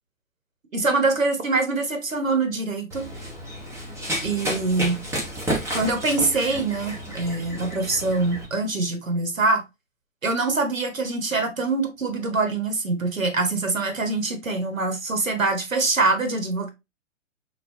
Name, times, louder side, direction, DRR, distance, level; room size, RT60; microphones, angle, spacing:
voice 1, 0.7-3.1 4.2-5.0 5.7-9.6 10.2-16.7, right 3 dB, 85° right, 1.4 m, -24 dB
Run, 2.9-8.4, equal, 5° right, 1.1 m, -31 dB
6.1 x 2.9 x 2.7 m
figure-of-eight pair, 115°, 39 cm